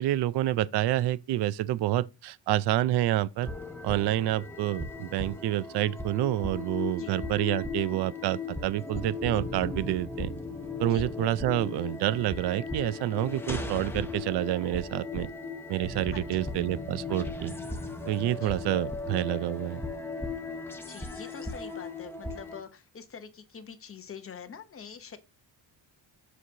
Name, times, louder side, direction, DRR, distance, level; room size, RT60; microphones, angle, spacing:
voice 1, 0.0-3.5 3.8-10.3 10.8-15.3 15.7-17.5 18.1-19.8, right 14 dB, 60° right, 0.5 m, -28 dB
sound 1, 3.4-22.6, left 3 dB, 5° left, 0.7 m, -37 dB
voice 2, 16.1-16.4 18.4-18.6 20.9-25.2, left 7 dB, 30° left, 0.9 m, -45 dB
7.4 x 6.3 x 2.8 m
cardioid pair, 165°, 45 cm